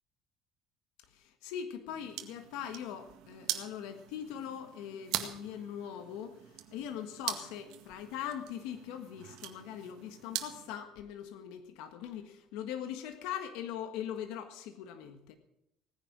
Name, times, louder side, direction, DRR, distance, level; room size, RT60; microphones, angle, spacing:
voice 1, 1.1-6.4 6.7-15.4, left 9 dB, 85° left, 7 dB, 1.5 m, -41 dB
sound 1, 1.9-10.7, right 13 dB, 75° right, 1.9 m, -42 dB
18.5 x 10.0 x 6.3 m, 0.83 s
cardioid pair, 125°, 0 cm